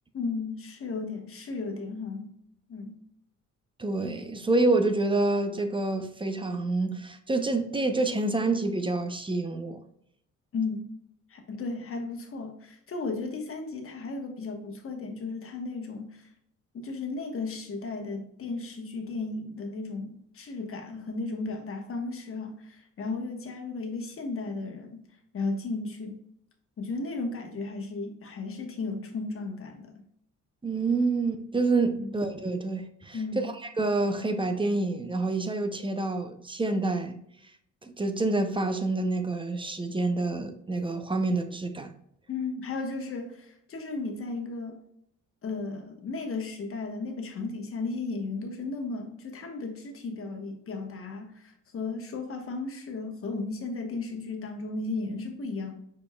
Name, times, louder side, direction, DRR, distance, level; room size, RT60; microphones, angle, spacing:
voice 1, 0.1-2.3 2.7-3.0 10.5-10.8 11.3-16.3 16.7-25.0 25.3-26.2 26.8-29.9 32.0-32.2 33.1-33.5 42.3-44.8 45.4-55.7, left 3 dB, 45° left, 1.2 m, -35 dB
voice 2, 3.8-9.8 30.6-33.2 33.4-37.2 37.8-41.9, right 2 dB, 15° right, 0.6 m, -27 dB
5.3 x 4.3 x 2.3 m
cardioid pair, 90°, 30 cm